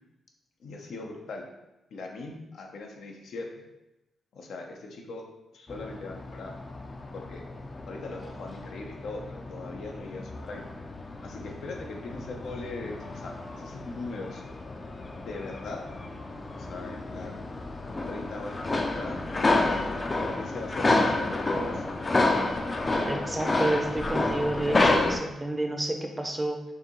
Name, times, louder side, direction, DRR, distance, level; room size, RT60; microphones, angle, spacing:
voice 1, 0.6-1.5 1.9-3.6 4.3-5.3 5.5-6.5 7.1-7.5 7.8-10.7 11.2-14.4 15.1-15.8 16.5-17.4 18.1-19.9 20.2-21.9, left 3 dB, 75° left, 1 dB, 0.6 m, -40 dB
sound 1, 5.7-25.2, left 2 dB, 30° left, 0.4 m, -30 dB
voice 2, 23.1-26.6, right 1 dB, 20° right, 3 dB, 0.6 m, -30 dB
4.7 x 2.7 x 3.0 m, 0.97 s
cardioid pair, 80°, 0 cm